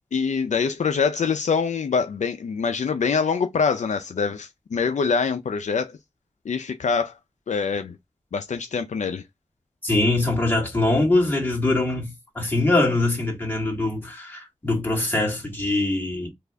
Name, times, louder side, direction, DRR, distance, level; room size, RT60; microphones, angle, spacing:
voice 1, 0.1-6.0 6.4-7.2 7.5-8.0 8.3-9.2, left 5 dB, 75° left, 0.5 m, -24 dB
voice 2, 9.8-16.3, left 2 dB, 15° left, 2.1 m, -23 dB
3.4 x 2.5 x 3.4 m
wide cardioid pair, 60°, 12 cm